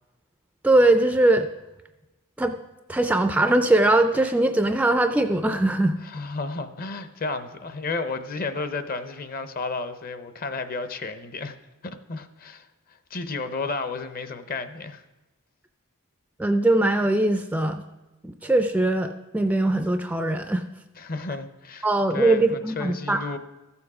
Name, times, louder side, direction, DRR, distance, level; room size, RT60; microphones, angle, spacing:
voice 1, 0.6-1.5 2.4-2.6 2.9-6.0 16.4-17.8 18.2-20.6 21.8-23.2, right 2 dB, 5° right, 0.3 m, -21 dB
voice 2, 6.0-11.6 11.8-12.7 13.1-15.0 21.0-23.4, left 3 dB, 40° left, 0.6 m, -32 dB
14.0 x 7.1 x 4.9 m
head